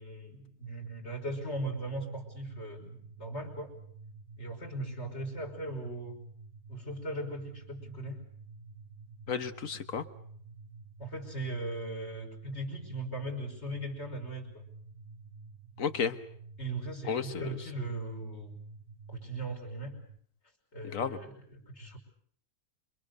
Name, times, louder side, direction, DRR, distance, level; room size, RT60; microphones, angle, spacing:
voice 1, 0.0-3.7 4.4-6.2 6.7-8.2 11.0-14.6 16.6-18.6 19.1-20.0 20.7-22.0, right 1 dB, 45° left, 2 dB, 5.7 m, -38 dB
sound 1, 0.6-20.2, right 4 dB, 35° right, 1.2 m, -50 dB
voice 2, 9.3-10.0 15.8-16.2 17.1-17.6 20.8-21.2, left 6 dB, 60° left, 11 dB, 1.7 m, -32 dB
27.5 x 24.5 x 6.7 m, 0.63 s
omnidirectional pair, 1.6 m